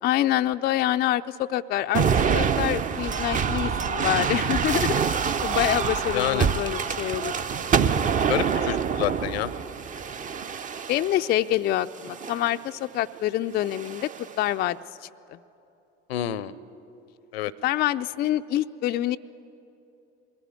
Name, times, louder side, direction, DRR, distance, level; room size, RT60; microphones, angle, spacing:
voice 1, 0.0-4.9 5.4-7.3 10.9-14.1 14.4-14.8 15.3-15.4 17.6-19.2, left 13 dB, 30° left, 9 dB, 0.4 m, -26 dB
sound 1, 1.9-11.3 12.0-12.5 13.6-14.3, right 6 dB, 25° right, 0.6 m, -26 dB
voice 2, 6.1-6.5 8.3-9.5 16.1-16.5 17.3-17.5, left 13 dB, 65° left, 20 dB, 0.7 m, -28 dB
21.0 x 15.0 x 9.6 m, 2.9 s
figure-of-eight pair, 65°, 33 cm